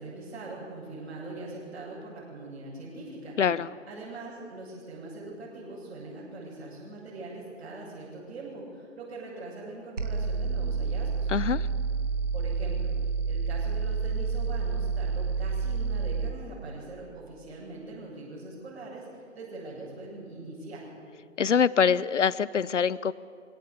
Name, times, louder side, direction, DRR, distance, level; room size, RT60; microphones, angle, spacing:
voice 1, 0.0-3.4 3.8-11.3 12.3-12.9 13.3-20.9, right 2 dB, 55° right, -8 dB, 7.8 m, -42 dB
voice 2, 3.4-3.7 11.3-11.7 21.4-23.1, left 7 dB, 70° left, 19 dB, 0.8 m, -24 dB
sound 1, 10.0-16.4, right 5 dB, 70° right, 1.7 m, -29 dB
22.5 x 17.0 x 8.5 m, 2.4 s
figure-of-eight pair, 135°, 38 cm